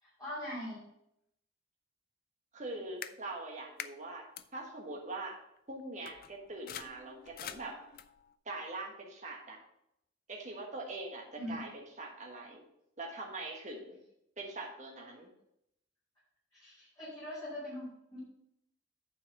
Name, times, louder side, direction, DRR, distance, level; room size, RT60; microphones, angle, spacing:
voice 1, 0.0-0.8 11.4-11.6 16.5-18.2, left 1 dB, 15° left, -9 dB, 2.7 m, -42 dB
voice 2, 2.5-4.3 4.5-5.4 5.7-7.8 8.4-9.6 10.3-12.6 13.0-14.0 14.4-15.3, right 2 dB, 40° right, 0 dB, 1.4 m, -43 dB
sound 1, 3.0-3.1 3.8-3.9 4.4-4.5 5.6-5.7 6.1-8.3, left 10 dB, 50° left, 0.4 m, -46 dB
8.9 x 4.7 x 5.9 m, 0.79 s
head